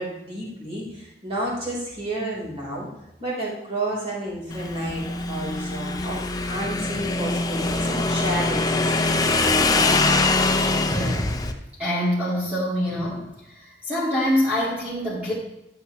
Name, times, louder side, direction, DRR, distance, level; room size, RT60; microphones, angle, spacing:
voice 1, 0.0-2.9 3.2-8.9, right 1 dB, 35° right, -5 dB, 3.9 m, -31 dB
Motorcycle / Engine, 4.5-11.5, left 3 dB, 20° left, 0.6 m, -23 dB
voice 2, 10.9-11.3 11.8-13.3 13.5-15.3, equal, 10° right, -10 dB, 2.1 m, -25 dB
11.0 x 7.9 x 3.1 m, 0.86 s
head